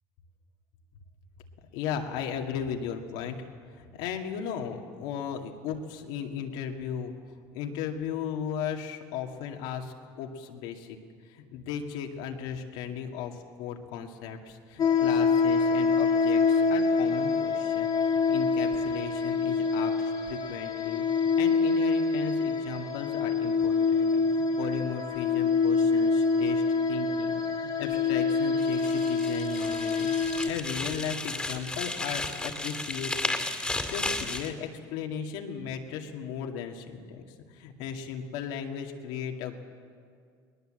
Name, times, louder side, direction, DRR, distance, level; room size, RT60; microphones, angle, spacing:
voice 1, 1.7-3.5 3.7-7.1 7.5-11.0 11.2-37.2 37.5-39.6, left 7 dB, 80° left, 3 dB, 2.2 m, -36 dB
sound 1, 14.8-30.5, left 4 dB, 40° left, 1.2 m, -26 dB
sound 2, 28.6-34.5, left 2 dB, 10° left, 2.2 m, -34 dB
20.5 x 20.0 x 7.7 m, 2.1 s
supercardioid pair, 115°, 10 cm